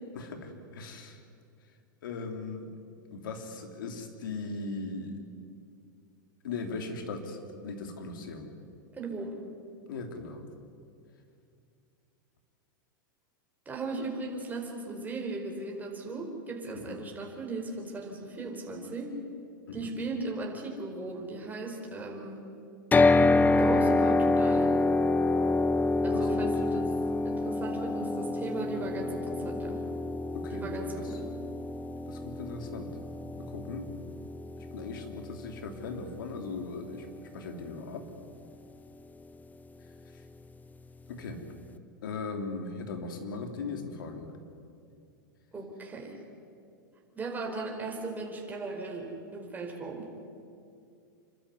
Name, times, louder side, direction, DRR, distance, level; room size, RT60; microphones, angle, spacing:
voice 1, 0.1-1.2 2.0-2.7 3.1-5.2 6.4-8.5 9.9-10.5 16.7-17.0 19.7-19.9 26.0-26.8 30.3-31.1 32.1-33.0 33.4-33.9 34.6-37.1 37.3-38.0 40.1-40.2 41.1-41.4 42.0-44.3, left 4 dB, 75° left, 5 dB, 3.2 m, -39 dB
voice 2, 8.9-9.4 13.6-19.2 19.7-22.4 23.6-24.7 26.0-26.9 27.2-29.8 30.5-31.3 45.5-46.2 47.1-50.1, right 3 dB, 15° right, 0 dB, 4.8 m, -37 dB
sound 1, 22.9-37.0, left 2 dB, 15° left, 0.9 m, -27 dB
27.5 x 12.5 x 9.7 m, 2.4 s
hypercardioid pair, 110°, 11 cm